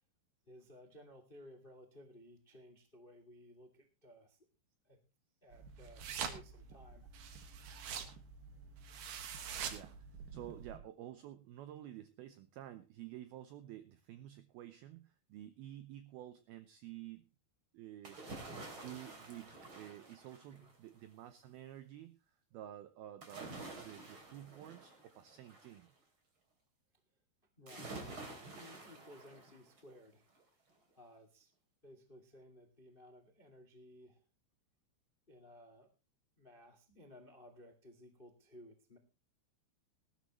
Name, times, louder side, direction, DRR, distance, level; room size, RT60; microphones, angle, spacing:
voice 1, 0.5-4.4 4.8-5.0 5.4-7.1 10.4-10.6 20.5-20.7 27.6-30.3 30.6-30.7 30.9-31.5 31.8-34.2 35.3-35.9 36.4-39.0, left 1 dB, 30° left, 7 dB, 0.9 m, -58 dB
sound 1, 5.5-10.8, right 7 dB, 60° right, 2.6 m, -45 dB
voice 2, 9.6-17.3 17.7-18.2 18.8-25.9, right 12 dB, 85° right, 11 dB, 2.2 m, -51 dB
sound 2, 18.0-20.9 23.2-25.8 27.7-29.9 30.4-30.5, right 2 dB, 30° right, 3.4 m, -50 dB
19.0 x 13.0 x 3.1 m, 0.31 s
omnidirectional pair, 5.4 m